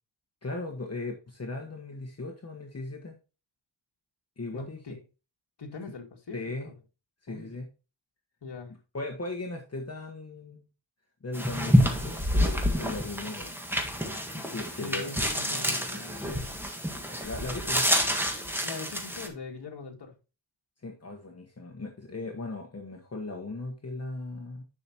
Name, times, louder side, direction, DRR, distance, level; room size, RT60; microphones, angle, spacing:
voice 1, 0.4-3.1 4.4-4.8 6.3-6.7 7.2-7.7 8.9-10.6 11.2-13.6 14.3-15.0 17.2-18.0 20.8-24.6, left 2 dB, 35° left, 1.4 m, -37 dB
voice 2, 4.5-5.0 5.6-6.4 6.6-6.8 7.3-7.5 8.4-8.7 14.8-16.5 18.6-20.2, left 4 dB, 60° left, 2.3 m, -41 dB
sound 1, 11.3-19.3, equal, 5° right, 1.8 m, -28 dB
10.5 x 6.0 x 2.9 m
wide cardioid pair, 135°, 45 cm